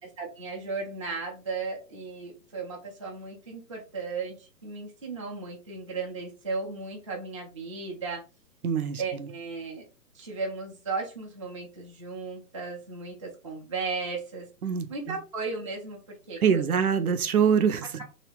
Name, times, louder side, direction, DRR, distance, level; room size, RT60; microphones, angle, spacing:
voice 1, 0.0-8.2 9.0-9.8 10.1-14.5 14.9-16.0 16.3-16.8, right 4 dB, 20° right, 0.4 m, -35 dB
voice 2, 8.6-9.3 14.6-15.2 16.4-18.0, right 7 dB, 60° right, 0.7 m, -25 dB
3.0 x 2.8 x 3.2 m
figure-of-eight pair, 135°, 49 cm